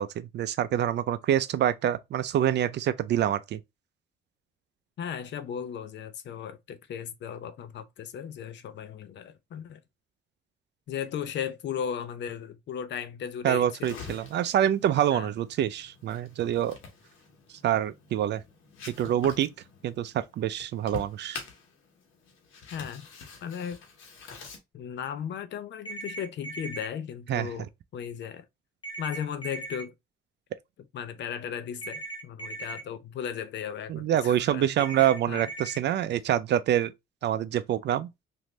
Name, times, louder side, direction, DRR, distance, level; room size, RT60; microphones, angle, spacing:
voice 1, 0.0-3.6 13.4-16.8 17.6-18.4 18.9-19.5 19.8-21.4 27.3-27.5 33.9-36.9 37.2-38.1, right 11 dB, 60° right, 0.4 m, -26 dB
voice 2, 5.0-9.8 10.9-14.0 15.1-15.3 22.7-23.1 23.4-23.8 24.7-28.4 29.0-29.9 30.9-35.5, left 8 dB, 65° left, 0.6 m, -36 dB
sound 1, 13.8-24.6, left 5 dB, 90° left, 1.1 m, -46 dB
sound 2, 25.9-26.9 28.8-29.8 31.8-32.8 34.8-35.8, right 2 dB, 25° left, 1.0 m, -38 dB
3.2 x 2.6 x 2.9 m
cardioid pair, 90°, 20 cm